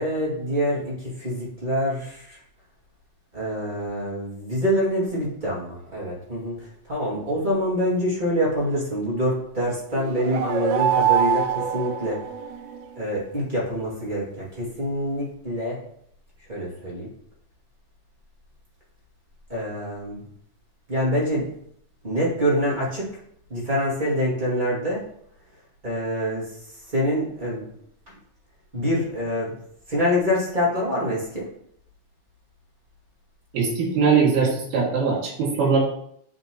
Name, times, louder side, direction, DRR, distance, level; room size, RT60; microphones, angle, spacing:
voice 1, 0.0-2.4 3.3-12.2 12.9-15.8 16.5-17.1 19.5-20.2 20.9-21.4 22.0-23.1 23.5-25.0 25.8-26.4 26.9-27.6 28.7-29.5 29.9-31.5, equal, 20° right, -6 dB, 1.3 m, -25 dB
sound 1, 9.9-12.8, right 9 dB, 85° right, 2.5 m, -24 dB
voice 2, 33.5-35.8, right 5 dB, 70° right, -3 dB, 3.7 m, -21 dB
8.6 x 5.3 x 3.0 m, 0.67 s
omnidirectional pair, 4.3 m